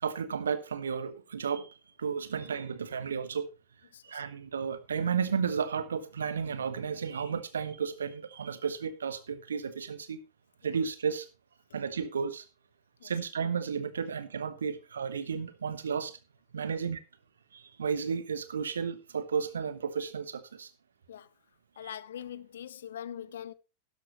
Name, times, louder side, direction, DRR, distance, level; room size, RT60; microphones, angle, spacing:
voice 1, 0.0-3.5 4.0-10.2 10.6-11.3 11.7-12.4 13.0-16.2 16.5-17.0 17.5-20.7 21.8-21.9, right 6 dB, 70° right, 1.2 m, -33 dB
voice 2, 3.9-4.3 13.0-13.1 16.7-16.8 21.1-21.3 21.8-23.5, left 9 dB, 60° left, 0.6 m, -42 dB
12.0 x 11.5 x 3.0 m
figure-of-eight pair, 90°, 0 cm